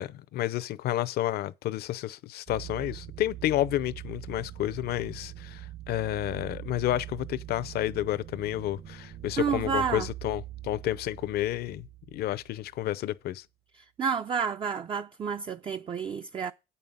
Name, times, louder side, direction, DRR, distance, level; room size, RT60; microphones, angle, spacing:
voice 1, 0.0-11.9 12.1-13.4, left 14 dB, 70° left, 0.6 m, -30 dB
sound 1, 2.5-12.9, right 13 dB, 55° right, 1.0 m, -43 dB
voice 2, 9.4-10.1 14.0-16.5, right 6 dB, 30° right, 0.4 m, -30 dB
8.5 x 5.5 x 7.1 m
cardioid pair, 110°, 17 cm